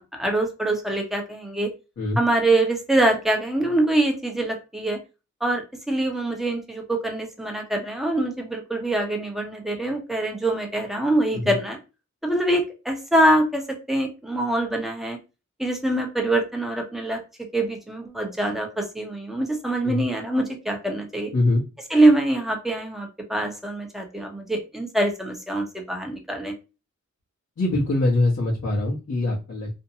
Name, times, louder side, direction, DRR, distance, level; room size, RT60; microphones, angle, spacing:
voice 1, 0.0-1.7 2.2-5.0 5.4-11.8 12.2-15.2 15.6-17.2 17.5-21.3 21.9-26.5, right 1 dB, ahead, 2 dB, 0.8 m, -24 dB
voice 2, 27.6-29.7, left 2 dB, 55° left, -6 dB, 0.9 m, -23 dB
2.6 x 2.1 x 2.7 m, 0.29 s
wide cardioid pair, 70°, 31 cm